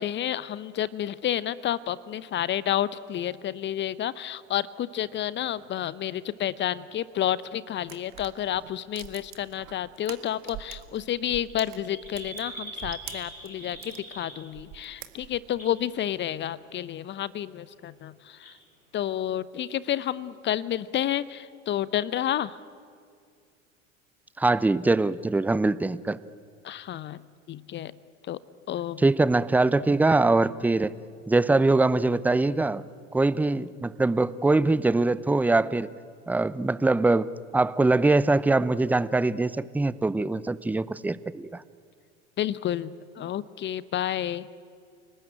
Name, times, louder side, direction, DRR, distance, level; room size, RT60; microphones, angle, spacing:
voice 1, 0.0-18.6 18.9-22.6 26.6-27.2 27.5-27.9 28.3-28.4 28.7-29.0 42.4-44.5, left 11 dB, 30° left, 19 dB, 0.8 m, -30 dB
sound 1, 5.1-6.8 7.7-7.8 8.0-8.3 9.4-9.7 10.0-10.1 10.3-10.4 10.6-14.7 15.0-15.1 15.4-15.8 16.4-16.7 17.1-17.2 17.5-17.6 17.8-17.9 18.4-18.6, right 1 dB, 90° left, 4.6 m, -43 dB
sound 2, 7.8-11.0 11.3-14.0 14.5-15.6, right 12 dB, 45° right, 2.0 m, -44 dB
voice 2, 24.4-26.2 29.0-30.9 31.3-32.8 33.1-35.9 36.3-37.3 37.5-41.6, right 2 dB, 5° right, 18 dB, 0.6 m, -23 dB
29.5 x 19.5 x 9.1 m, 2.2 s
figure-of-eight pair, 75°, 39 cm